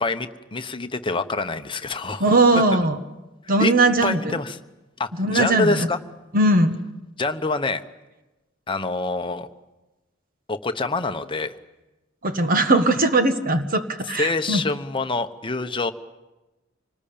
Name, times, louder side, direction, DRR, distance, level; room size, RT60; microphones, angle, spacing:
voice 1, 0.0-2.3 3.6-3.7 4.0-4.6 5.0-6.0 7.2-7.8 8.7-9.5 10.5-11.6 14.2-15.9, left 3 dB, 25° left, 8 dB, 1.0 m, -26 dB
voice 2, 2.2-3.0 3.5-4.4 5.2-5.9 6.3-6.8 12.2-14.6, right 2 dB, 45° right, 7 dB, 1.5 m, -19 dB
26.5 x 19.5 x 8.7 m, 1.1 s
head